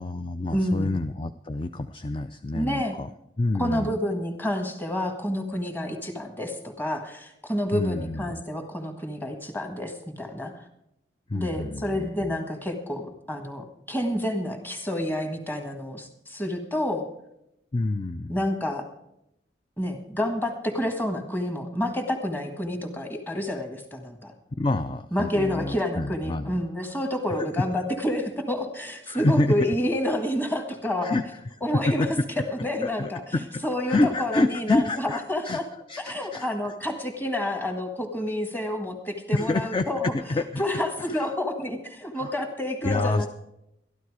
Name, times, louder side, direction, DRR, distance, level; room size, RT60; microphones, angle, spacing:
voice 1, 0.0-3.1 3.4-3.9 7.7-8.4 11.3-12.4 17.7-18.4 24.5-26.6 27.4-27.5 29.1-29.5 31.0-31.2 31.7-32.1 32.6-35.6 35.9-36.7 39.3-40.6 41.0-41.3 42.2-42.3 42.8-43.3, left 2 dB, 25° left, 9 dB, 0.4 m, -28 dB
voice 2, 0.5-0.9 2.5-3.0 3.6-10.6 11.3-17.1 18.3-18.9 19.8-24.3 25.1-31.2 31.6-32.1 32.5-33.2 33.6-35.6 36.0-40.1 40.6-43.3, left 1 dB, 10° left, 5 dB, 1.6 m, -29 dB
13.0 x 12.0 x 4.8 m, 0.79 s
head